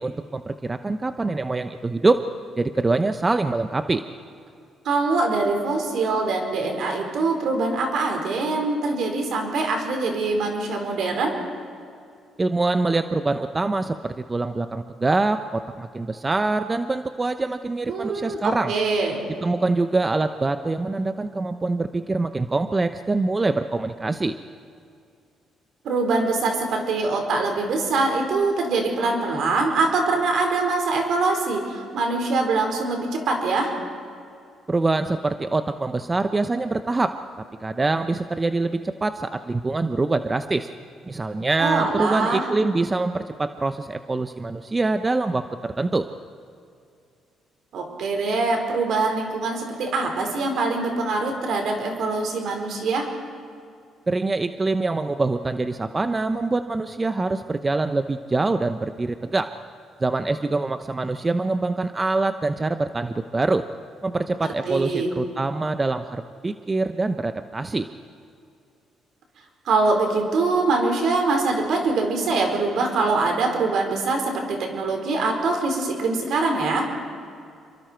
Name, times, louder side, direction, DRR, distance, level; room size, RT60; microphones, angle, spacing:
voice 1, 0.0-2.2 2.6-4.0 12.4-18.7 19.4-24.3 34.7-37.1 37.6-40.7 41.1-46.1 54.1-59.5 60.0-63.6 64.0-67.9, right 3 dB, 25° right, 9 dB, 0.8 m, -24 dB
voice 2, 4.8-11.3 17.9-19.2 25.8-33.7 41.6-42.5 47.7-53.1 64.7-65.1 69.6-76.9, right 3 dB, 70° right, 2 dB, 4.7 m, -23 dB
28.0 x 23.5 x 4.6 m, 2.4 s
cardioid pair, 95°, 0 cm